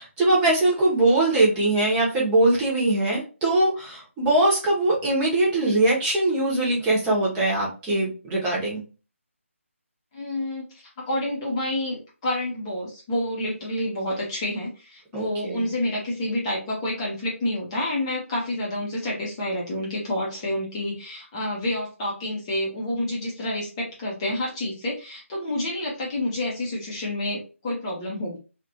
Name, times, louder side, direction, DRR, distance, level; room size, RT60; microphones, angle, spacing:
voice 1, 0.0-8.8 15.1-15.6, right 2 dB, 10° right, -6 dB, 1.0 m, -22 dB
voice 2, 10.1-28.4, left 1 dB, 20° left, -4 dB, 0.8 m, -29 dB
2.9 x 2.5 x 2.8 m, 0.33 s
figure-of-eight pair, 155°, 7 cm